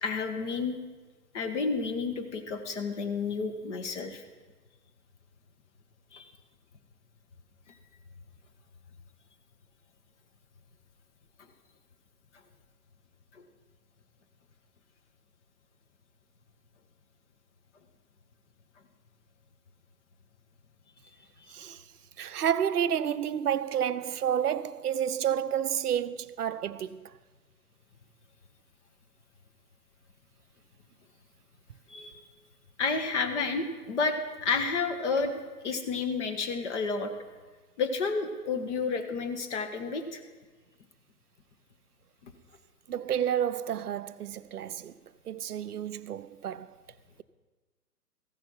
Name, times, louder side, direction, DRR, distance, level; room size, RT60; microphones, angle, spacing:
voice 1, 0.0-0.8 1.3-4.2 6.1-6.3 21.4-21.5 31.9-32.2 32.8-35.4 35.6-37.1 37.8-40.2 42.2-42.3, left 4 dB, 45° left, 1.8 m, -31 dB
voice 2, 21.5-21.8 22.2-27.1 42.9-44.9 45.3-46.8, right 9 dB, 70° right, 0.7 m, -30 dB
15.0 x 9.6 x 5.8 m
figure-of-eight pair, 125°, 48 cm